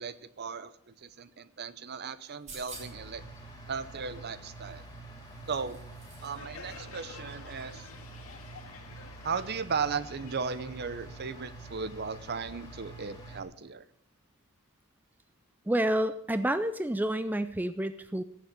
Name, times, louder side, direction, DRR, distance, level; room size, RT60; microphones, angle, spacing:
voice 1, 0.0-3.2 3.7-4.8 5.5-5.8 6.2-7.9 9.2-13.8, right 5 dB, 50° right, 15 dB, 0.7 m, -36 dB
sound 1, 2.2-3.1 4.6-6.4 6.7-6.8, right 3 dB, 30° right, 3.8 m, -49 dB
sound 2, 2.7-13.4, right 2 dB, 15° left, 3.3 m, -47 dB
Crowd, 6.2-11.6, left 4 dB, 70° left, 2.0 m, -50 dB
voice 2, 15.7-18.2, right 1 dB, 10° right, 11 dB, 0.4 m, -29 dB
17.5 x 7.3 x 6.6 m, 0.75 s
head